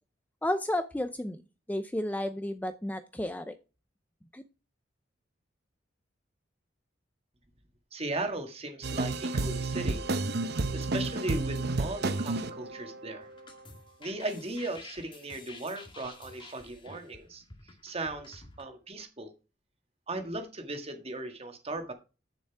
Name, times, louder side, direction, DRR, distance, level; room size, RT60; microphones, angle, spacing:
voice 1, 0.4-1.4 1.7-3.6 4.3-4.4, left 1 dB, 10° left, 9 dB, 0.6 m, -32 dB
voice 2, 7.9-10.0 10.7-13.3 14.0-17.4 17.8-19.3 20.1-21.9, right 2 dB, 30° right, 6 dB, 1.7 m, -37 dB
sound 1, 8.8-13.3, right 3 dB, 60° right, 0.8 m, -31 dB
sound 2, 13.2-18.6, left 3 dB, 25° left, 1.7 m, -51 dB
9.0 x 7.0 x 4.7 m, 0.32 s
head